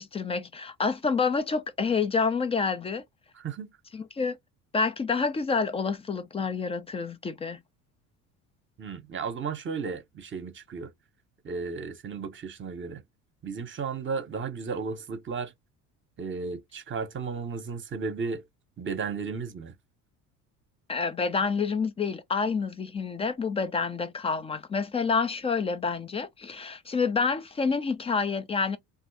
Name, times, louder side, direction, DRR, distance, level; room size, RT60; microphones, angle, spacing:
voice 1, 0.0-3.0 3.9-4.4 4.7-7.6 20.9-28.8, left 5 dB, 15° left, 0.4 m, -28 dB
voice 2, 3.3-3.7 8.8-10.9 11.4-13.0 13.4-15.5 16.2-18.4 18.8-19.7, right 5 dB, 25° right, 0.9 m, -34 dB
3.0 x 2.6 x 2.6 m
figure-of-eight pair, 60°, 47 cm